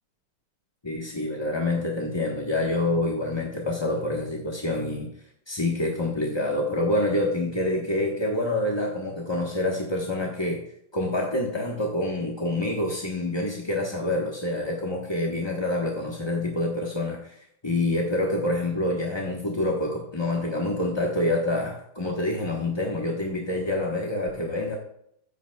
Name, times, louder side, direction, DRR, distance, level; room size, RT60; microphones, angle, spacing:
voice 1, 0.8-5.1 5.5-10.6 10.9-24.8, left 1 dB, 20° left, -1 dB, 0.8 m, -27 dB
14.0 x 9.1 x 2.3 m, 0.71 s
omnidirectional pair, 2.3 m